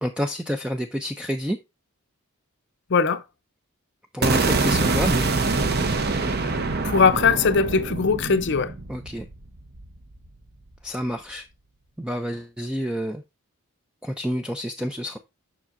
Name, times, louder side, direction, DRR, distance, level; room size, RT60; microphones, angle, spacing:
voice 1, 0.0-1.6 4.1-5.3 8.9-9.3 10.8-11.5 12.0-13.2 14.0-15.2, equal, 5° right, 0.3 m, -28 dB
voice 2, 2.9-3.2 6.8-8.7, left 5 dB, 55° left, 0.5 m, -20 dB
sound 1, 4.2-10.3, right 3 dB, 45° right, 0.7 m, -25 dB
7.3 x 5.8 x 2.5 m
head